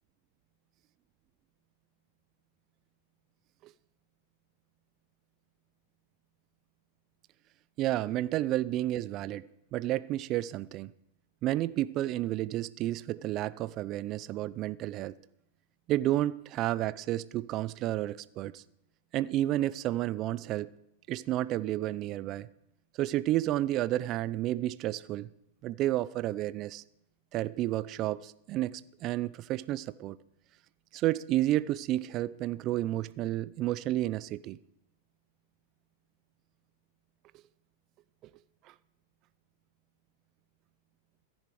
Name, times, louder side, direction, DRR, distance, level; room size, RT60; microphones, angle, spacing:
voice 1, 7.8-10.9 11.4-15.1 15.9-18.6 19.1-20.7 21.1-22.5 23.0-25.3 25.6-26.8 27.3-30.2 30.9-34.6, right 14 dB, 40° right, 0.4 m, -31 dB
15.0 x 10.5 x 4.8 m
hypercardioid pair, 125°, 0 cm